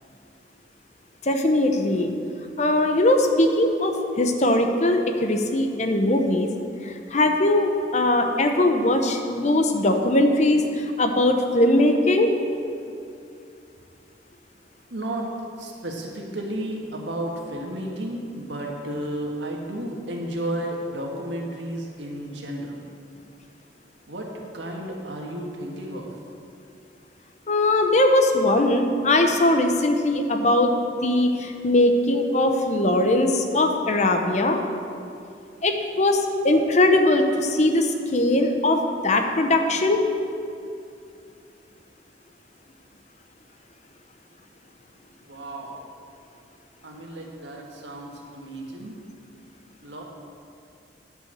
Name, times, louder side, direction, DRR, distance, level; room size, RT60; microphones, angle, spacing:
voice 1, 1.2-2.1 2.6-6.5 6.8-12.4 27.5-30.7 31.0-34.6 35.6-40.0, left 1 dB, 40° left, 5 dB, 0.8 m, -20 dB
voice 2, 14.9-15.3 15.6-22.8 24.1-24.3 24.5-26.1 45.2-45.9 46.8-49.0 49.8-50.0, right 1 dB, 85° right, 0 dB, 1.6 m, -32 dB
10.5 x 5.6 x 7.5 m, 2.5 s
head